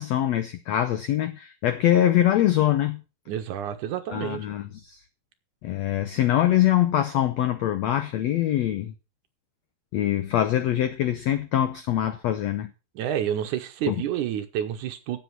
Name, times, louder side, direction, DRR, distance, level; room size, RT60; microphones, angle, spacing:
voice 1, 0.0-3.0 4.1-5.0 5.6-8.9 9.9-12.7 13.9-14.0, left 12 dB, 85° left, 1.5 m, -23 dB
voice 2, 3.3-4.5 13.0-15.2, right 10 dB, 70° right, 2.2 m, -29 dB
10.5 x 7.9 x 5.9 m
omnidirectional pair, 4.1 m